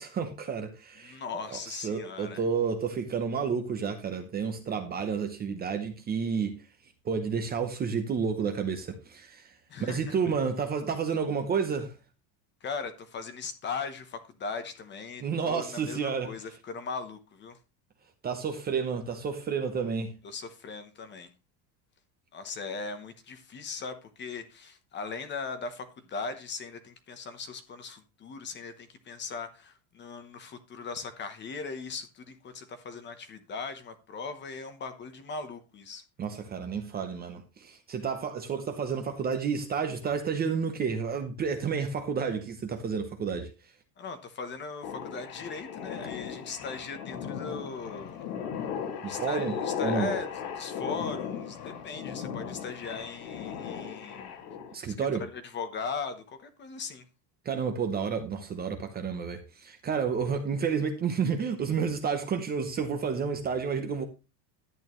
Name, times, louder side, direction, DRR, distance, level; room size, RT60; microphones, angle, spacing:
voice 1, 0.0-1.2 1.5-6.6 7.0-9.5 9.8-11.9 15.2-16.3 18.2-20.1 36.2-43.5 49.0-50.1 54.7-55.2 57.4-64.0, right 6 dB, 20° right, 0.8 m, -30 dB
voice 2, 1.0-2.4 9.7-10.2 12.6-17.6 20.2-21.3 22.3-36.0 44.0-48.3 49.0-54.3 55.0-57.0, left 4 dB, 20° left, 0.9 m, -39 dB
sound 1, 44.8-54.7, left 7 dB, 65° left, 2.2 m, -37 dB
11.0 x 8.7 x 3.0 m
cardioid pair, 165°, 49 cm